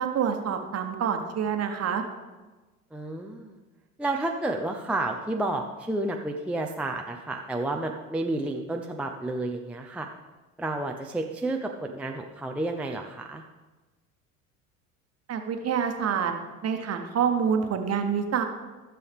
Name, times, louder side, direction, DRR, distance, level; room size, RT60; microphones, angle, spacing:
voice 1, 0.0-2.0 15.3-16.3 16.6-18.4, right 7 dB, 35° right, 5 dB, 1.3 m, -27 dB
voice 2, 2.9-3.6 4.0-10.1 10.6-13.4, right 2 dB, 5° right, 2 dB, 0.6 m, -31 dB
14.5 x 6.9 x 3.6 m, 1.2 s
figure-of-eight pair, 70°, 44 cm